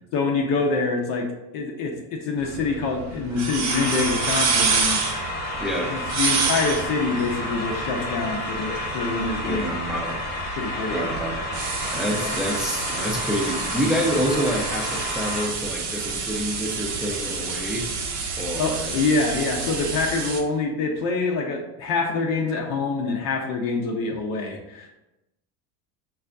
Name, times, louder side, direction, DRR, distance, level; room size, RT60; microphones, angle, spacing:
voice 1, 0.1-5.2 5.9-9.8 10.6-11.1 12.1-12.4 18.6-25.0, left 4 dB, 60° left, 1 dB, 0.7 m, -26 dB
sound 1, 2.4-20.4, right 4 dB, 40° right, 0.6 m, -29 dB
sound 2, 3.7-15.5, left 1 dB, 20° left, 1.0 m, -31 dB
voice 2, 5.6-6.0 9.4-10.2 10.9-11.4 11.9-17.9 18.4-18.9, equal, ahead, -1 dB, 0.5 m, -27 dB
5.6 x 2.3 x 2.5 m, 0.93 s
supercardioid pair, 105°, 43 cm